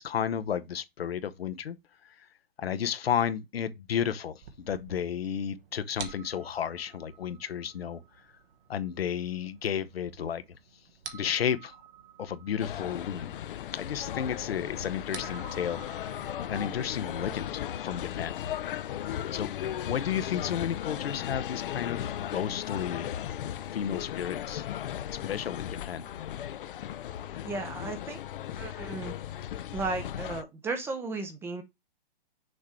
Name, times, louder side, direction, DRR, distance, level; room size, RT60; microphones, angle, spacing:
voice 1, 0.0-1.8 2.0-2.3 2.6-8.0 8.7-10.4 11.1-11.8 12.2-13.4 13.7-18.3 19.3-19.5 19.9-23.2 23.7-24.7 25.1-26.0, left 8 dB, 85° left, 0.9 m, -32 dB
sound 1, 4.4-19.2, right 7 dB, 65° right, 1.3 m, -50 dB
sound 2, 12.6-30.4, left 11 dB, 60° left, 0.6 m, -36 dB
voice 2, 27.4-28.2 28.5-29.2 29.7-31.6, right 3 dB, 10° right, 0.5 m, -35 dB
6.5 x 3.1 x 4.8 m
hypercardioid pair, 145°, 29 cm